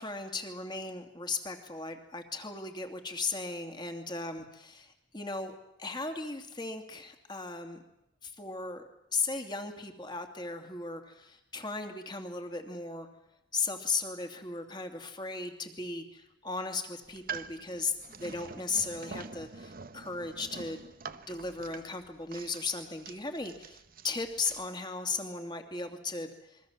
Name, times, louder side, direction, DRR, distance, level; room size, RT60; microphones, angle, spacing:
voice 1, 0.0-7.8 8.2-8.8 9.1-13.1 13.5-20.8 21.1-26.6, left 3 dB, 20° left, 5 dB, 2.7 m, -36 dB
sound 1, 17.0-24.7, right 5 dB, 45° right, 1.0 m, -46 dB
28.0 x 23.0 x 7.4 m, 0.86 s
head